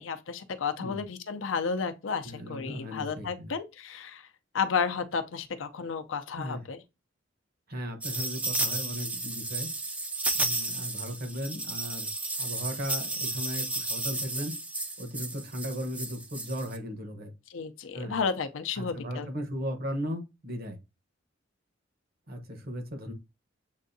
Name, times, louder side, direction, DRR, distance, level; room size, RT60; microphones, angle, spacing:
voice 1, 0.0-4.2 4.5-6.8 17.5-19.3, left 5 dB, 70° left, 0.5 m, -32 dB
voice 2, 2.2-3.5 6.4-6.6 7.7-9.7 10.3-12.1 12.4-14.5 15.0-17.3 17.9-18.2 18.8-20.8 22.3-23.1, equal, 50° right, 1.0 m, -36 dB
sound 1, 8.0-16.8, right 2 dB, 5° right, 0.4 m, -33 dB
7.2 x 2.6 x 2.6 m
head